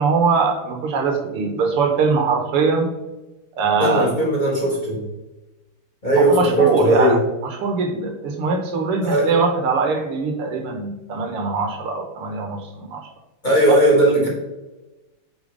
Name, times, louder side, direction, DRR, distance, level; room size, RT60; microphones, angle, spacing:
voice 1, 0.0-2.9 3.6-4.1 6.2-7.2 7.6-13.0, right 4 dB, 90° right, 3 dB, 2.1 m, -21 dB
voice 2, 3.8-5.0 6.0-7.2 9.0-9.3 13.4-14.3, right 1 dB, 25° left, -3 dB, 1.6 m, -18 dB
5.8 x 5.4 x 5.0 m, 1.0 s
omnidirectional pair, 2.4 m